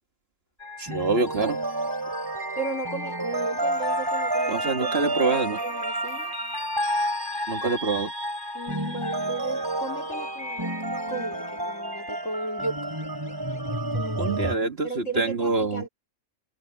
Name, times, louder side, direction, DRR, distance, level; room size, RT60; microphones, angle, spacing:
sound 1, 0.6-14.6, right 1 dB, 15° right, 3.2 m, -30 dB
voice 1, 0.8-1.6 4.5-5.6 7.5-8.1 14.2-15.9, right 4 dB, 45° right, 1.6 m, -26 dB
voice 2, 2.6-6.3 8.5-12.9 13.9-14.5 14.8-15.9, right 3 dB, 60° left, 3.6 m, -35 dB
omnidirectional pair, 1.5 m